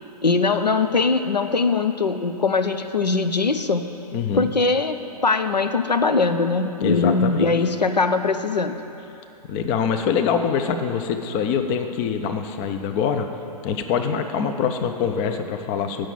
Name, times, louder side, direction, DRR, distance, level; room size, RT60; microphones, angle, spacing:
voice 1, 0.2-3.8 4.3-8.8, left 4 dB, 85° left, 9 dB, 0.6 m, -21 dB
voice 2, 4.1-4.5 6.8-7.5 9.5-13.3 13.6-16.1, left 7 dB, 20° left, 7 dB, 0.4 m, -24 dB
8.9 x 6.3 x 7.2 m, 2.9 s
figure-of-eight pair, 120°, 21 cm